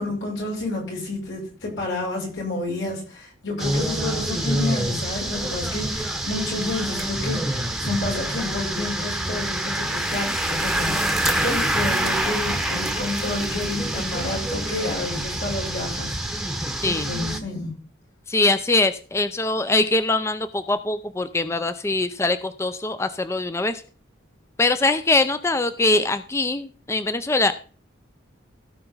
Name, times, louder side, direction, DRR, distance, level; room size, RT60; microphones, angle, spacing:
voice 1, 0.0-16.4 17.0-17.8, left 2 dB, 90° left, 6.5 m, -30 dB
sound 1, 3.6-17.4, right 1 dB, ahead, 0.9 m, -26 dB
voice 2, 18.3-23.8 24.6-27.5, left 2 dB, 15° left, 0.4 m, -22 dB
16.5 x 5.6 x 3.9 m
head